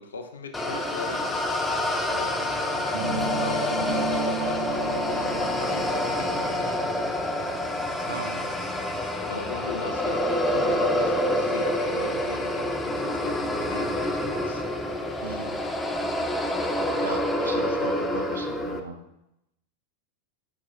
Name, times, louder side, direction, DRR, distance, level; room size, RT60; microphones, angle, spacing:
voice 1, 0.0-1.8 2.1-3.7 4.1-7.4 9.3-14.6, left 4 dB, 70° left, 5 dB, 0.5 m, -39 dB
sound 1, 0.5-18.8, left 1 dB, 5° left, 0.4 m, -27 dB
sound 2, 2.9-8.9, right 4 dB, 50° right, 0.8 m, -34 dB
voice 2, 8.1-8.5 9.5-9.6 15.2-15.5 16.5-16.7 17.0-19.0, right 4 dB, 75° right, 4 dB, 0.5 m, -37 dB
4.7 x 4.1 x 2.3 m, 0.85 s
figure-of-eight pair, 90°, 0 cm